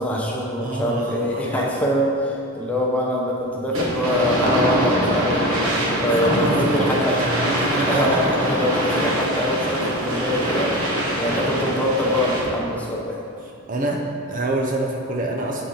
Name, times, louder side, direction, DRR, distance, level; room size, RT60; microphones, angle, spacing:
voice 1, 0.0-7.2 7.9-10.7 11.2-13.2, left 1 dB, 5° left, -3 dB, 0.7 m, -24 dB
voice 2, 0.6-1.7 6.1-8.1 13.7-15.6, right 1 dB, 35° right, 0 dB, 0.5 m, -26 dB
sound 1, 3.7-12.6, right 1 dB, 75° right, 1.3 m, -23 dB
8.2 x 4.2 x 3.8 m, 2.6 s
head